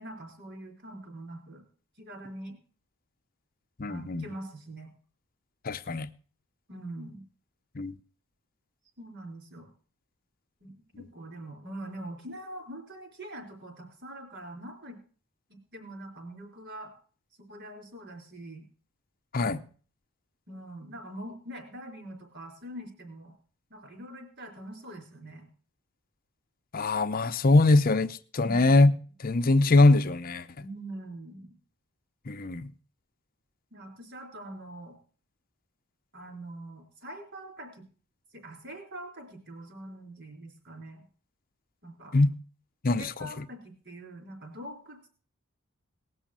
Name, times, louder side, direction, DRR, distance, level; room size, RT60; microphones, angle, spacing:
voice 1, 0.0-1.6 2.0-2.6 3.9-4.9 6.7-7.2 9.0-9.7 10.6-15.0 15.5-16.9 17.5-18.7 19.4-19.6 20.5-23.3 23.7-25.5 30.6-31.5 33.7-34.9 36.1-37.8 38.3-41.0 41.8-42.2 43.0-45.1, right 1 dB, 55° right, 4.3 m, -43 dB
voice 2, 3.8-4.3 5.6-6.1 7.7-7.9 19.3-19.6 26.7-28.9 29.2-30.5 32.3-32.7 42.1-42.3 42.8-43.3, left 2 dB, 40° left, 0.7 m, -22 dB
18.5 x 6.3 x 7.4 m
head